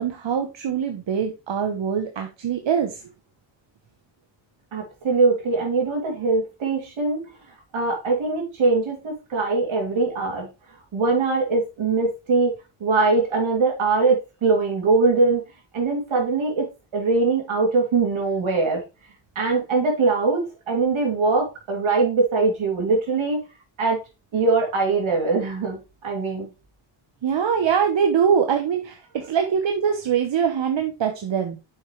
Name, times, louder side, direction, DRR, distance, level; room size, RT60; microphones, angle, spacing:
voice 1, 0.0-3.0 27.2-31.6, right 7 dB, 65° right, 4 dB, 1.1 m, -23 dB
voice 2, 4.7-7.2 7.7-10.5 10.9-12.5 12.8-15.4 15.7-18.8 19.3-23.4 23.8-24.0 24.3-26.5, right 3 dB, 80° right, 0 dB, 3.1 m, -22 dB
7.1 x 5.9 x 3.3 m, 0.27 s
cardioid pair, 60°, 47 cm